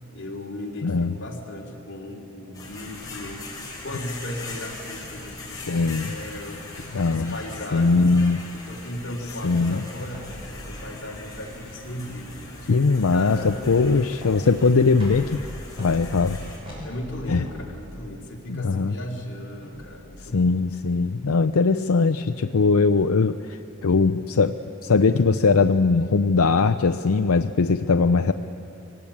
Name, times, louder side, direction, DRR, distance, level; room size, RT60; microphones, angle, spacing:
voice 1, 0.1-6.6 7.1-8.0 8.5-12.5 12.9-13.7 14.3-14.9 16.8-20.6, left 1 dB, 55° left, -1 dB, 3.3 m, -36 dB
voice 2, 0.8-1.1 5.7-6.1 6.9-7.3 7.7-8.4 9.4-9.8 12.7-15.4 15.8-16.4 17.3-17.4 18.5-18.9 20.3-24.6 24.8-28.3, left 4 dB, 85° left, 8 dB, 0.6 m, -20 dB
sound 1, 2.5-16.6, left 2 dB, 15° left, 5.1 m, -40 dB
sound 2, 10.1-21.3, equal, 25° right, 7.4 m, -42 dB
24.5 x 19.0 x 8.6 m, 2.8 s
head